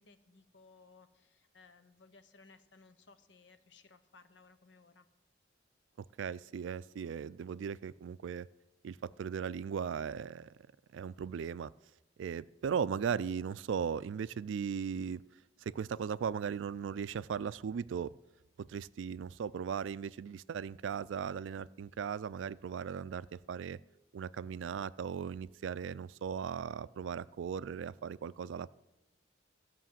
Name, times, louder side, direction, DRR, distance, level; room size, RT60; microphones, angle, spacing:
voice 1, 0.0-5.1, left 4 dB, 70° left, 11 dB, 0.8 m, -61 dB
voice 2, 6.2-8.5 8.8-10.5 10.9-11.7 12.2-15.2 15.6-18.1 18.7-23.8 24.1-28.7, right 7 dB, 85° right, 18 dB, 0.3 m, -37 dB
14.0 x 5.9 x 7.5 m, 0.99 s
head